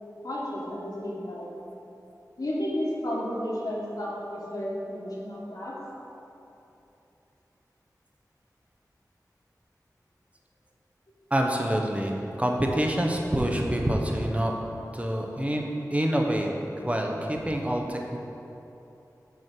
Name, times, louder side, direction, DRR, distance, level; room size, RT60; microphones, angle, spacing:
voice 1, 0.2-1.5 2.4-5.7, equal, 65° left, -6 dB, 1.3 m, -32 dB
voice 2, 11.3-14.5 14.9-15.6 15.9-18.2, right 1 dB, 20° right, 1 dB, 0.8 m, -26 dB
6.0 x 4.5 x 5.9 m, 2.9 s
wide cardioid pair, 50°, 7 cm